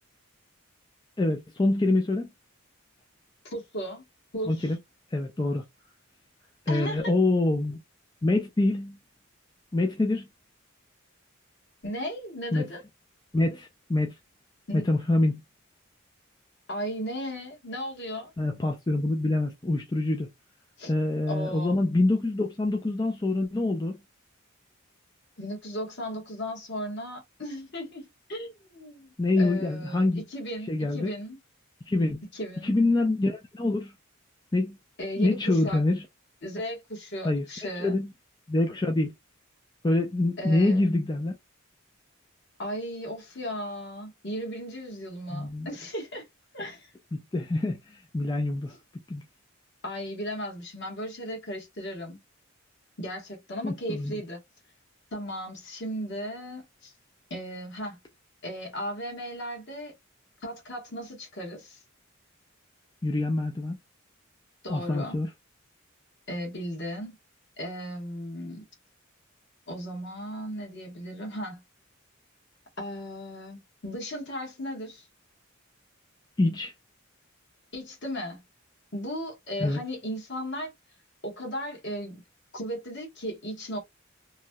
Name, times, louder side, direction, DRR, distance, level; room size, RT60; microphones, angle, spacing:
voice 1, 1.2-2.3 4.5-4.8 5.1-5.6 6.7-7.8 8.2-9.0 9.7-10.3 12.5-12.7 13.3-14.1 14.7-15.4 18.4-20.3 20.9-24.0 29.2-30.2 30.7-31.1 31.9-32.2 32.6-33.9 34.5-34.8 35.2-36.1 37.2-37.4 37.8-38.1 38.5-39.1 39.8-41.3 45.3-45.7 47.1-48.7 49.1-49.2 53.6-54.1 63.0-63.8 64.7-65.3 76.4-76.7 79.6-79.8, left 2 dB, 20° left, 0.4 m, -25 dB
voice 2, 3.4-4.0 4.3-4.7 6.7-7.1 11.8-12.8 14.7-14.8 16.7-18.3 20.8-20.9 21.3-21.8 25.4-31.4 32.3-32.7 35.0-35.8 36.4-37.9 40.4-40.9 42.6-46.3 46.5-46.9 49.8-52.2 53.0-54.4 55.1-56.9 57.3-58.0 58.4-59.9 60.4-61.8 64.6-65.2 66.3-67.2 67.6-68.6 69.7-71.6 72.8-75.1 77.7-78.4 78.9-80.7 81.2-82.2 82.5-83.8, equal, 55° left, 1.3 m, -36 dB
3.0 x 2.7 x 2.2 m
head